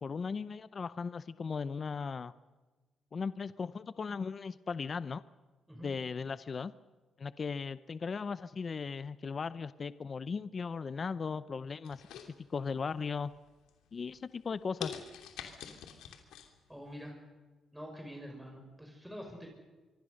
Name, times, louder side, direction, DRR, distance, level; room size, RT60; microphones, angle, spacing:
voice 1, 0.0-2.3 3.1-5.2 5.8-6.7 7.2-13.3 13.9-14.9, left 5 dB, 45° left, 15 dB, 0.7 m, -37 dB
sound 1, 11.8-12.9 13.3-13.7 14.2-14.3 14.8-16.5 16.9-17.0, left 9 dB, 90° left, 2.9 m, -44 dB
voice 2, 16.7-17.2 17.7-19.5, equal, 5° right, 2 dB, 5.6 m, -46 dB
25.5 x 24.0 x 6.5 m, 1.2 s
cardioid pair, 75°, 0 cm